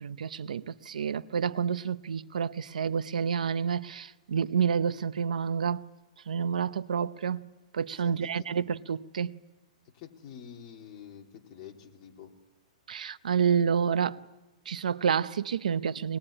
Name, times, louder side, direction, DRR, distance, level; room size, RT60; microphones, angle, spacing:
voice 1, 0.0-5.8 6.3-7.5 7.7-9.3 12.9-14.2 14.7-16.2, right 7 dB, 90° right, 0.8 m, -29 dB
voice 2, 8.0-8.3 9.9-12.3, left 8 dB, 30° left, 2.9 m, -47 dB
24.0 x 20.5 x 10.0 m
hypercardioid pair, 165°, 4 cm